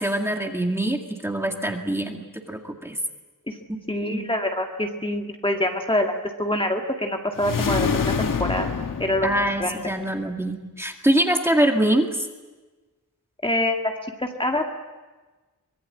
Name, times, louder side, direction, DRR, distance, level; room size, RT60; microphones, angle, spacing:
voice 1, 0.0-3.0 3.7-3.8 4.1-4.3 9.2-12.3, right 1 dB, 10° right, 3 dB, 2.1 m, -24 dB
voice 2, 3.9-6.1 6.4-8.7 9.0-9.3 9.6-9.8 13.4-13.9 14.2-14.6, left 1 dB, 15° left, 3 dB, 2.0 m, -25 dB
sound 1, 7.4-10.0, left 6 dB, 80° left, 1.7 m, -26 dB
24.5 x 21.0 x 9.7 m, 1.2 s
wide cardioid pair, 165°, 32 cm